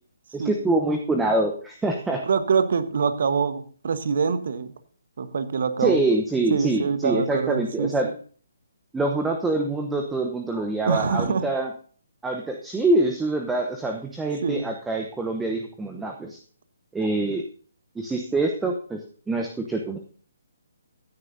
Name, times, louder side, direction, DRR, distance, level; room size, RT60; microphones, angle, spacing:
voice 1, 0.3-2.2 5.8-8.1 8.9-11.7 12.2-16.4 16.9-17.4 18.0-19.0 19.3-20.0, right 2 dB, 5° right, 3 dB, 0.9 m, -25 dB
voice 2, 2.3-4.7 5.2-6.0 6.5-8.1 10.9-11.4 14.4-14.7, right 5 dB, 55° right, 11 dB, 1.3 m, -25 dB
16.0 x 9.9 x 2.7 m, 0.43 s
figure-of-eight pair, 140°, 0 cm